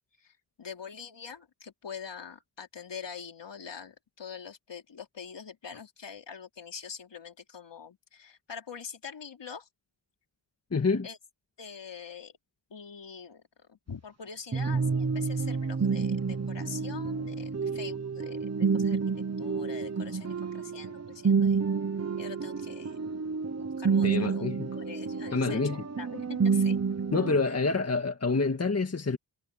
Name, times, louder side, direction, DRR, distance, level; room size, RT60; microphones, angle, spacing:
voice 1, 0.0-9.7 11.0-11.2 11.6-12.4 12.7-21.6 22.2-23.0 23.6-24.5 24.8-26.8 27.4-27.5, left 6 dB, 60° left, 3.8 m, -44 dB
voice 2, 10.7-11.1 24.0-24.7 25.3-25.8 27.1-29.2, left 4 dB, 30° left, 1.9 m, -27 dB
sound 1, 14.5-27.4, right 5 dB, 30° right, 1.2 m, -29 dB
wide cardioid pair, 100°, 49 cm